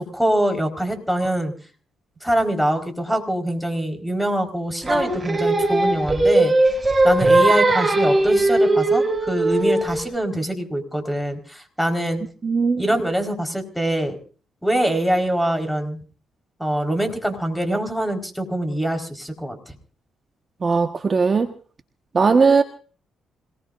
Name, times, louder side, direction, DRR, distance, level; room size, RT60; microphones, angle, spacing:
voice 1, 0.0-1.5 2.2-6.5 7.0-12.2 12.8-14.2 14.6-16.0 16.6-19.6, right 1 dB, ahead, 6 dB, 4.5 m, -24 dB
Singing, 4.9-10.1, right 2 dB, 20° right, 6.7 m, -19 dB
voice 2, 12.4-12.8 20.6-21.5 22.1-22.6, right 4 dB, 35° right, 6 dB, 1.4 m, -18 dB
26.5 x 19.0 x 2.6 m, 0.41 s
cardioid pair, 90°, 0 cm